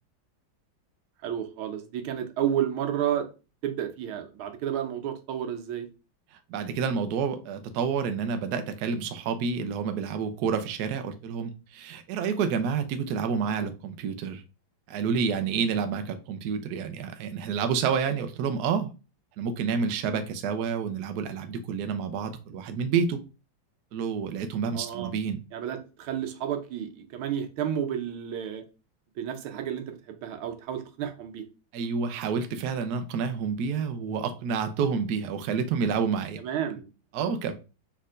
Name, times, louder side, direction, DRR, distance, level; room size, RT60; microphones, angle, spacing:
voice 1, 1.2-3.3 3.6-5.9 24.7-25.1 25.5-28.6 29.2-31.4 36.4-36.9 37.2-37.3, right 9 dB, 85° right, 1.6 m, -31 dB
voice 2, 6.5-14.4 14.9-18.9 19.4-23.2 23.9-25.4 31.7-36.4 37.1-37.5, right 6 dB, 70° right, 1.0 m, -29 dB
4.3 x 4.0 x 2.5 m
omnidirectional pair, 2.2 m